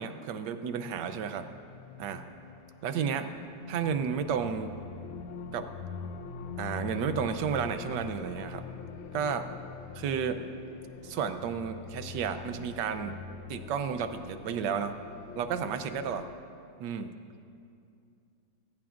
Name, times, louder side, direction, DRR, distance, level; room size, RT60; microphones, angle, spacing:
voice 1, 0.0-1.5 2.0-2.2 2.8-3.3 3.7-4.7 5.5-5.7 6.6-8.7 9.1-9.5 9.9-10.4 11.0-13.2 13.5-14.9 15.4-16.3 16.8-17.1, right 7 dB, 70° right, 9 dB, 1.3 m, -32 dB
sound 1, 1.0-16.3, left 5 dB, 90° left, 1.5 m, -43 dB
20.5 x 16.0 x 2.5 m, 2.5 s
omnidirectional pair, 2.1 m